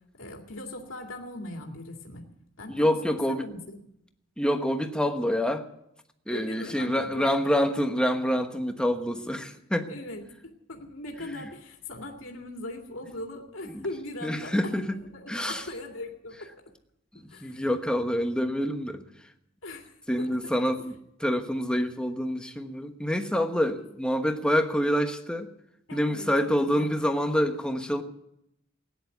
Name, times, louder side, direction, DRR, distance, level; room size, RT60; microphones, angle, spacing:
voice 1, 0.2-2.3 2.6-3.8 6.3-7.2 9.9-16.5 17.1-17.7 19.6-20.6 25.9-27.0, left 1 dB, 75° left, 1 dB, 2.3 m, -40 dB
voice 2, 2.7-3.5 4.4-5.6 6.3-10.0 13.7-13.9 14.2-15.0 15.3-15.6 17.1-19.1 20.1-20.9 21.2-25.5 25.9-28.0, equal, 5° left, 6 dB, 1.1 m, -27 dB
16.5 x 10.5 x 8.1 m, 0.77 s
head